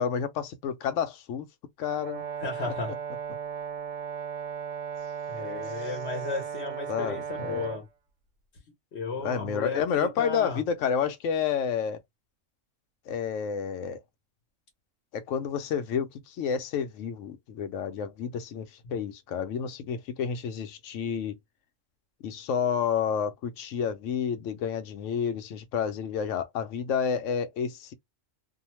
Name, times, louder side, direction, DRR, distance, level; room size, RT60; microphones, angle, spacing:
voice 1, 0.0-1.5 1.8-2.2 6.9-7.7 9.2-12.0 13.1-14.0 15.1-21.4 22.2-27.9, left 7 dB, 90° left, 1.0 m, -30 dB
Brass instrument, 2.0-7.8, right 7 dB, 90° right, 1.1 m, -36 dB
voice 2, 2.4-2.9 5.3-7.9 8.9-10.6 18.8-18.9, left 3 dB, 60° left, 1.1 m, -34 dB
2.7 x 2.1 x 2.9 m
omnidirectional pair, 1.3 m